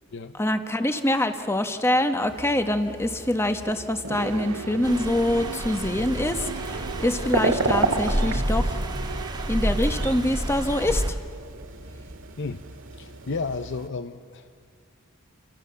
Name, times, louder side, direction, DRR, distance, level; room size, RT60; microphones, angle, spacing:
voice 1, 0.4-8.8 9.5-11.0, left 1 dB, 10° left, 7 dB, 1.1 m, -25 dB
sound 1, 2.2-13.9, right 3 dB, 65° right, 2.0 m, -33 dB
sound 2, 4.1-10.7, right 5 dB, 85° right, 0.6 m, -37 dB
sound 3, 4.8-11.1, equal, 20° right, 1.5 m, -29 dB
voice 2, 12.9-14.6, left 4 dB, 60° left, 9 dB, 0.7 m, -33 dB
28.5 x 24.0 x 6.9 m, 2.2 s
head